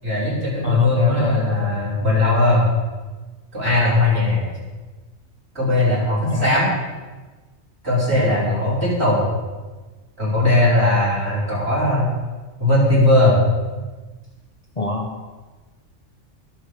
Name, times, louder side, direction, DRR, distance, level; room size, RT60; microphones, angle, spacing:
voice 1, 0.0-2.6 3.5-4.4 5.5-6.7 7.8-9.2 10.2-12.1 12.6-13.4, left 1 dB, 55° right, -7 dB, 6.2 m, -18 dB
voice 2, 0.6-1.7 4.2-4.5 6.2-6.6 8.1-8.3 14.8-15.3, left 3 dB, 30° left, 3 dB, 1.2 m, -28 dB
24.0 x 8.0 x 5.1 m, 1.3 s
omnidirectional pair, 1.3 m